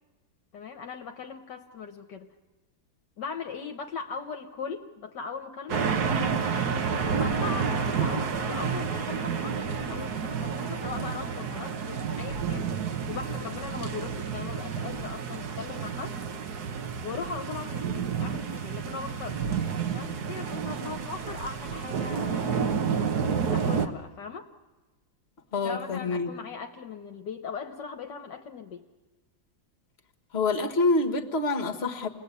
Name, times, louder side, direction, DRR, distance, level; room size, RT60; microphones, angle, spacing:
voice 1, 0.5-2.3 3.2-5.9 6.9-16.2 17.0-19.4 19.9-22.9 23.5-24.5 25.6-28.8, left 5 dB, 65° left, 5 dB, 1.6 m, -39 dB
sound 1, 5.7-23.9, right 6 dB, 60° right, 1.5 m, -30 dB
voice 2, 25.5-26.3 30.3-32.1, left 3 dB, 35° left, 4 dB, 1.8 m, -26 dB
29.0 x 20.5 x 8.3 m, 1.2 s
omnidirectional pair, 2.1 m